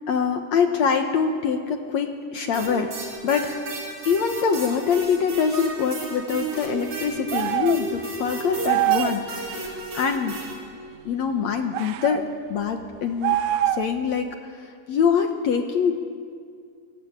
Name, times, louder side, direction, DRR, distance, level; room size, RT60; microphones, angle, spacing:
voice 1, 0.1-2.9 3.2-3.6 4.1-10.4 11.1-13.4 13.7-16.0, left 6 dB, 60° left, 5 dB, 2.3 m, -24 dB
sound 1, 2.5-10.5, right 3 dB, 55° right, 7.4 m, -34 dB
sound 2, 7.3-7.8 8.6-9.2 11.7-12.2 13.2-14.0, right 13 dB, 75° right, 2.3 m, -23 dB
24.0 x 23.0 x 9.8 m, 2.2 s
omnidirectional pair, 3.8 m